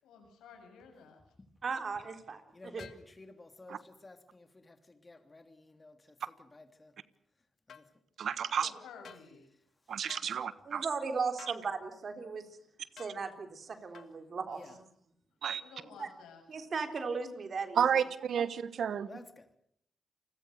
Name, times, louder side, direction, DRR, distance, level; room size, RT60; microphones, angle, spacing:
voice 1, 0.0-1.2 8.5-9.5 14.5-14.8 15.6-16.4, left 5 dB, 90° left, 5 dB, 6.9 m, -53 dB
voice 2, 1.6-2.4 2.7-2.9 10.4-12.4 12.9-14.6 16.0-16.1 16.5-17.8, right 5 dB, 55° right, 7 dB, 3.8 m, -37 dB
voice 3, 2.5-7.0 7.7-7.9 9.9-10.1 14.5-14.7 19.1-19.6, left 2 dB, 30° left, 8 dB, 3.3 m, -54 dB
sound 1, 2.8-3.0 7.7-7.9 9.0-9.3 10.1-10.3 11.4-11.6 13.0-13.2 13.9-14.1, left 7 dB, 70° left, 1.8 m, -51 dB
voice 4, 8.2-8.7 9.9-10.9 15.4-15.6 17.8-19.1, right 8 dB, 70° right, 15 dB, 1.3 m, -31 dB
28.5 x 21.0 x 6.6 m, 0.68 s
supercardioid pair, 50°, 0 cm